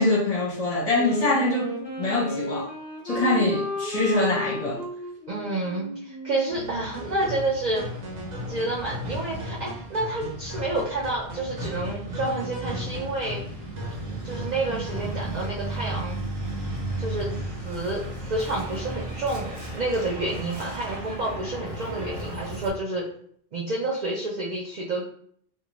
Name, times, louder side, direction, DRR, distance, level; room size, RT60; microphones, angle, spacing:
voice 1, 0.0-2.7 3.0-4.8, left 2 dB, 35° left, 0.8 m, -24 dB
Wind instrument woodwind instrument, 0.9-7.5, right 1 dB, 5° right, 0.9 m, -33 dB
voice 2, 5.3-7.9 8.4-13.4 14.2-16.2 17.0-17.3 17.6-23.1 23.5-25.1, right 2 dB, 60° right, 0.4 m, -29 dB
Truck, 6.5-22.7, right 1 dB, 40° right, 0.9 m, -35 dB
sound 1, 6.9-15.7, left 1 dB, 80° right, 1.2 m, -38 dB
2.5 x 2.5 x 2.9 m
omnidirectional pair, 1.3 m